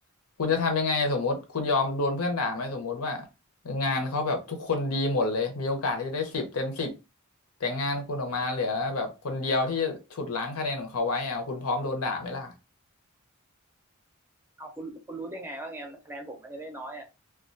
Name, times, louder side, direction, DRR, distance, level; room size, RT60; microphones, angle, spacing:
voice 1, 0.4-3.3 3.6-6.9 7.6-12.5, left 3 dB, 85° left, 0.7 m, -28 dB
voice 2, 14.6-17.0, right 2 dB, 10° right, 0.5 m, -39 dB
2.3 x 2.2 x 2.5 m
head